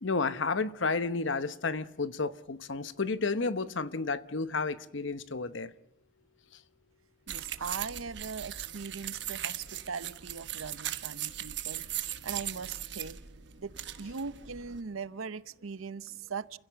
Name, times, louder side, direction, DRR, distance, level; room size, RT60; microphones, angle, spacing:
voice 1, 0.0-5.7, left 4 dB, 70° left, 0.9 m, -31 dB
sound 1, 7.3-14.8, right 11 dB, 60° right, 1.1 m, -39 dB
voice 2, 7.3-11.9 12.2-13.2 13.6-16.6, right 5 dB, 90° right, 0.7 m, -40 dB
29.0 x 16.5 x 7.0 m
head